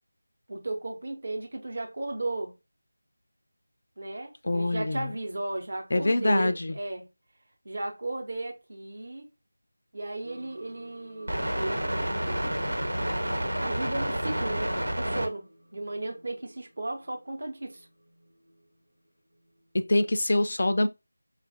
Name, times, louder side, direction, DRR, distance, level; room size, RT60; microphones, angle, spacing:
voice 1, 0.5-2.5 4.0-7.1 7.6-9.3 9.9-12.6 13.6-17.9, right 2 dB, 45° right, 0.9 m, -35 dB
voice 2, 4.4-5.1 5.9-6.8 19.7-20.9, left 1 dB, 45° left, 0.3 m, -24 dB
sound 1, 10.2-15.3, right 1 dB, 75° right, 1.1 m, -30 dB
4.8 x 2.4 x 2.7 m
figure-of-eight pair, 165°, 0 cm